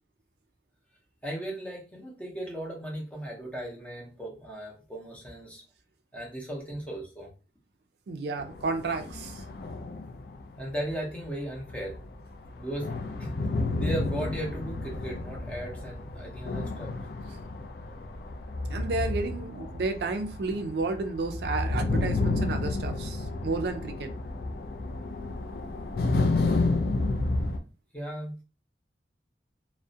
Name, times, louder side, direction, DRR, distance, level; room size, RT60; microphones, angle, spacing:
voice 1, 1.2-5.6 6.1-7.3 10.6-12.0 12.5-12.9 13.2-13.4 13.8-16.9 27.9-28.4, right 1 dB, 10° left, 0.6 m, -36 dB
voice 2, 8.1-9.4 18.7-24.1, right 3 dB, 70° right, 0.3 m, -32 dB
sound 1, 8.4-11.2 11.6-27.6, left 2 dB, 55° left, 0.3 m, -31 dB
2.3 x 2.0 x 2.6 m
head